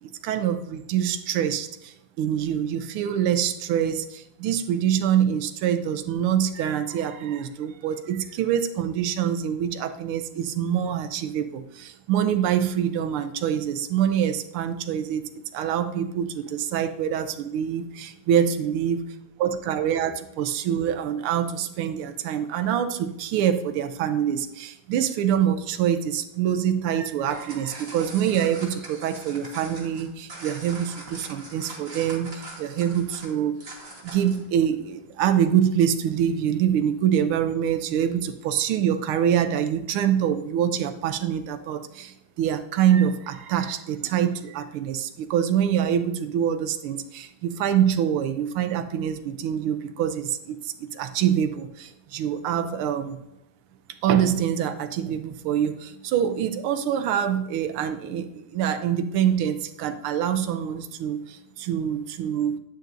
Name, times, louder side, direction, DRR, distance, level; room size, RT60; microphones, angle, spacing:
voice 1, 0.0-15.2 15.5-19.0 19.4-33.6 34.0-53.2 54.0-62.6, right 9 dB, 85° right, 9 dB, 1.6 m, -25 dB
sound 1, 27.3-34.5, right 2 dB, 30° right, 1.6 m, -42 dB
11.5 x 8.8 x 2.6 m, 0.85 s
omnidirectional pair, 2.3 m